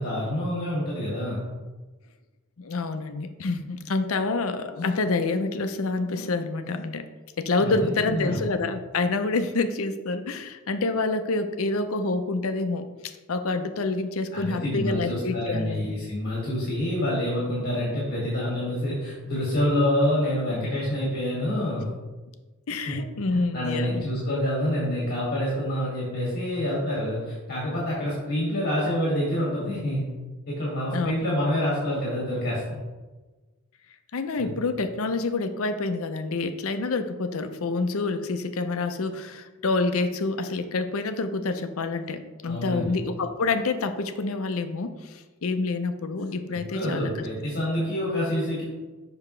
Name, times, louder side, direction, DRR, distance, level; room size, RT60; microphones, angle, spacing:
voice 1, 0.0-1.4 7.6-8.4 14.3-21.9 22.9-23.0 23.3-30.0 30.5-32.8 34.4-34.5 42.4-42.9 46.5-48.6, left 1 dB, 45° left, -6 dB, 2.2 m, -27 dB
voice 2, 2.6-7.1 7.4-15.9 22.7-24.0 30.9-31.2 34.1-47.3, left 3 dB, 70° left, 9 dB, 0.6 m, -27 dB
7.0 x 5.8 x 3.2 m, 1.2 s
head